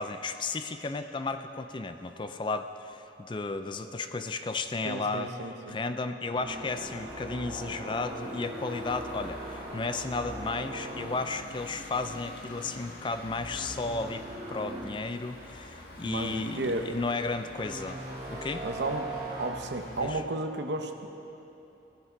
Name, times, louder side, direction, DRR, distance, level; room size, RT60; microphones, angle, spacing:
voice 1, 0.0-5.3 5.7-18.0 18.3-18.7 20.0-20.2, left 3 dB, 25° left, 9 dB, 0.4 m, -34 dB
voice 2, 4.8-5.8 16.0-16.9 18.6-19.1 19.4-21.1, right 2 dB, 75° right, 6 dB, 0.9 m, -33 dB
sound 1, 6.3-12.3 12.6-12.9 13.4-14.9 15.4-15.5 17.6-19.5, right 1 dB, 35° right, 2.8 m, -40 dB
sound 2, 6.8-20.2, left 1 dB, 55° left, 1.5 m, -47 dB
16.0 x 9.7 x 4.5 m, 3.0 s
head